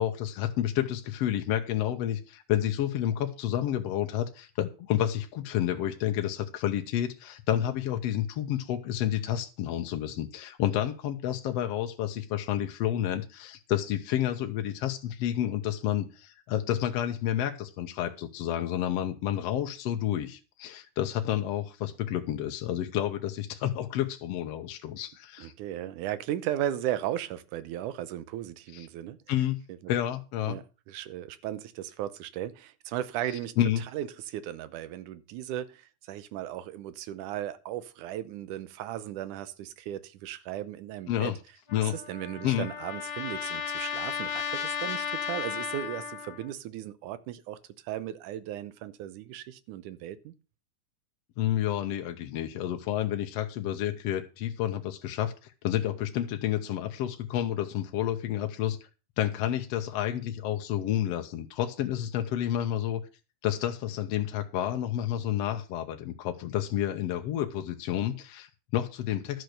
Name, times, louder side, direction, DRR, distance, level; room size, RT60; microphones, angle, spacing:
voice 1, 0.0-25.5 28.7-28.9 29.3-29.6 29.9-30.6 33.6-33.8 41.1-41.4 41.7-42.0 42.4-42.7 51.4-58.8 59.2-63.0 63.4-69.4, left 11 dB, 70° left, 1.7 m, -30 dB
voice 2, 25.4-29.2 29.7-29.8 30.4-41.3 41.8-47.6 47.8-50.3, right 12 dB, 85° right, 2.3 m, -36 dB
Trumpet, 41.7-46.5, left 8 dB, 45° left, 1.3 m, -34 dB
11.5 x 6.4 x 6.5 m
omnidirectional pair, 3.5 m